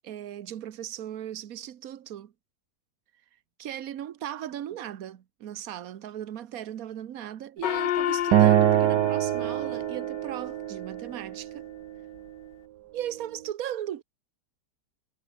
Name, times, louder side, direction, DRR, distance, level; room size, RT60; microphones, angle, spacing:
voice 1, 0.0-2.3 3.6-11.7 12.9-14.0, right 11 dB, 60° right, 1.4 m, -37 dB
Gong, 7.6-10.5, left 12 dB, 80° left, 1.5 m, -31 dB
Acoustic guitar, 8.3-11.6, right 14 dB, 75° right, 1.2 m, -24 dB
omnidirectional pair, 1.9 m